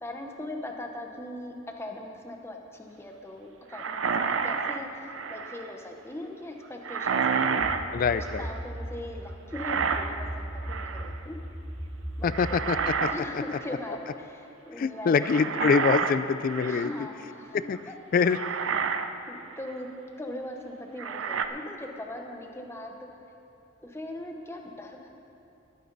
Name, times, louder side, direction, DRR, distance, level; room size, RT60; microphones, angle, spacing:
voice 1, 0.0-4.9 5.3-7.8 8.1-11.4 12.2-12.3 13.0-15.4 16.7-17.9 19.3-19.9 20.2-22.9 23.8-25.1, left 1 dB, 15° left, 2 dB, 1.0 m, -40 dB
sound 1, 3.7-5.7 6.8-8.6 9.5-10.3 10.7-11.2 12.3-13.2 13.5-13.8 15.2-17.0 17.7-17.8 18.3-19.1 19.6-19.7 21.0-21.5, right 6 dB, 75° right, 0.6 m, -29 dB
sound 2, 7.6-12.8, right 1 dB, ahead, 0.6 m, -38 dB
voice 2, 7.9-8.5 12.2-12.9 13.3-13.4 13.9-14.0 14.8-16.9 17.5-17.8 18.1-18.4, left 5 dB, 45° left, 14 dB, 0.3 m, -25 dB
20.0 x 9.3 x 4.0 m, 2.8 s
head